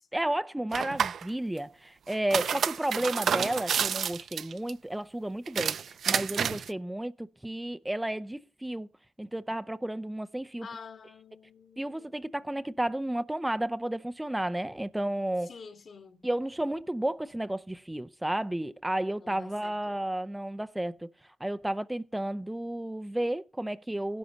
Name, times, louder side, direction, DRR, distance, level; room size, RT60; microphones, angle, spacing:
voice 1, 0.1-8.9 9.2-10.7 11.8-15.5 16.2-21.1 21.4-24.2, right 1 dB, 10° right, 0.6 m, -32 dB
sound 1, 0.7-1.3 2.1-4.7 5.5-6.7, right 7 dB, 60° right, 0.7 m, -29 dB
voice 2, 2.4-3.1 10.6-12.1 12.4-12.5 15.4-16.3 19.2-20.1, left 5 dB, 50° left, 2.3 m, -49 dB
16.0 x 11.5 x 4.0 m
cardioid pair, 90°, 0 cm